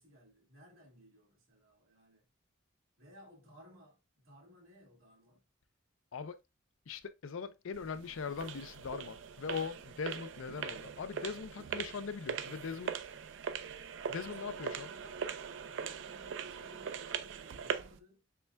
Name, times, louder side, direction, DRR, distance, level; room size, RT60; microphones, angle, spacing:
voice 1, 0.0-2.2 3.0-5.4 14.1-15.3 15.6-18.2, equal, 85° right, 1.6 m, -60 dB
voice 2, 6.9-12.9 14.1-14.9, left 5 dB, 80° left, 0.5 m, -40 dB
sound 1, 7.7-18.0, right 7 dB, 65° right, 0.4 m, -41 dB
6.8 x 2.3 x 2.2 m
head